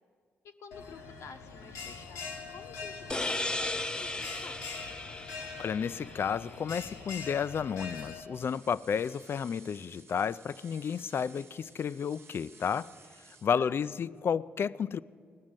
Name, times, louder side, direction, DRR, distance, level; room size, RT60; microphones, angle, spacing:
voice 1, 0.4-4.6 13.6-14.0, left 5 dB, 70° left, 6 dB, 0.9 m, -50 dB
Bell, 0.7-8.2, left 5 dB, 85° left, 1.1 m, -43 dB
sound 1, 3.1-6.5, left 2 dB, 15° left, 0.7 m, -36 dB
voice 2, 5.6-12.9 13.4-15.0, left 7 dB, 50° left, 17 dB, 0.4 m, -32 dB
sound 2, 8.3-13.5, right 4 dB, 55° right, 1.2 m, -56 dB
18.0 x 6.3 x 8.9 m, 2.1 s
supercardioid pair, 50°, 5 cm